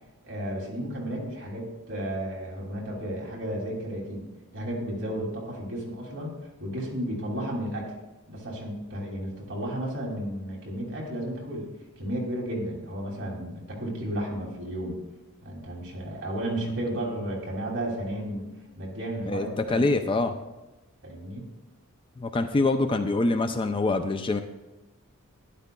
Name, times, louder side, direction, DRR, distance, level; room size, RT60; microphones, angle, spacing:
voice 1, 0.2-4.3 4.5-6.3 6.6-7.9 8.3-11.7 12.0-15.0 15.4-18.5 18.7-20.0 21.0-21.5, right 1 dB, 55° right, -2 dB, 2.8 m, -33 dB
voice 2, 19.3-20.3 22.2-24.4, left 2 dB, 25° left, 7 dB, 0.4 m, -25 dB
11.5 x 10.5 x 2.3 m, 1.1 s
head